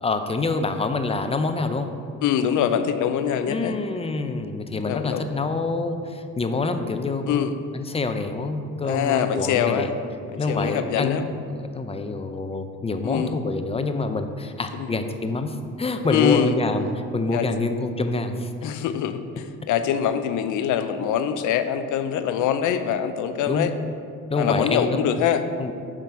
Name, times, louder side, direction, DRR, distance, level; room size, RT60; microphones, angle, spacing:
voice 1, 0.0-1.9 3.5-9.9 10.4-16.9 17.1-18.5 23.4-23.7 24.3-25.0 25.6-25.7, left 3 dB, 20° left, 8 dB, 0.5 m, -26 dB
voice 2, 2.2-3.8 4.7-5.2 7.3-7.6 8.8-9.9 10.3-11.2 13.0-13.4 14.7-14.9 16.1-16.6 17.3-17.5 18.6-23.7 24.4-25.4, left 9 dB, 80° left, 10 dB, 0.5 m, -24 dB
7.4 x 3.8 x 5.6 m, 2.4 s
cardioid pair, 90°, 30 cm